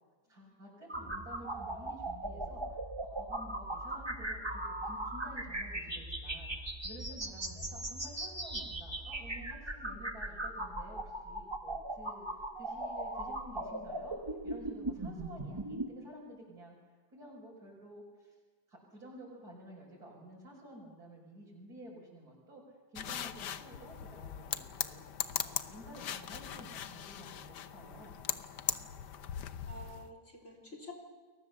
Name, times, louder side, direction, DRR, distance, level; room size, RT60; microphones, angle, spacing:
voice 1, 0.3-16.8 17.1-18.4 18.7-22.6 22.9-25.0 25.4-28.2, right 1 dB, 65° right, -5 dB, 6.0 m, -52 dB
sound 1, 0.9-15.9, right 1 dB, 15° right, 1.6 m, -39 dB
sound 2, 23.0-30.1, left 9 dB, 90° left, 1.5 m, -40 dB
voice 2, 29.3-30.9, left 1 dB, 45° left, 2 dB, 3.9 m, -51 dB
30.0 x 22.0 x 6.9 m, 1.4 s
omnidirectional pair, 1.8 m